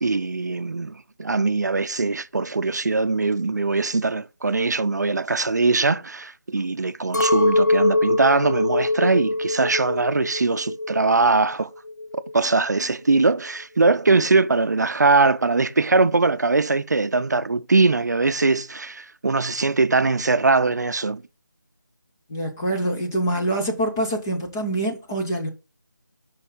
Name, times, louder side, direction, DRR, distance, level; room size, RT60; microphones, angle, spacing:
voice 1, 0.0-11.7 12.3-21.2, right 3 dB, 65° right, 0.6 m, -21 dB
Chink clink, 7.1-11.5 11.8-12.6, left 2 dB, 65° left, 0.8 m, -23 dB
voice 2, 22.3-25.5, right 1 dB, 10° left, 0.6 m, -25 dB
5.4 x 4.4 x 5.1 m
figure-of-eight pair, 170°, 10 cm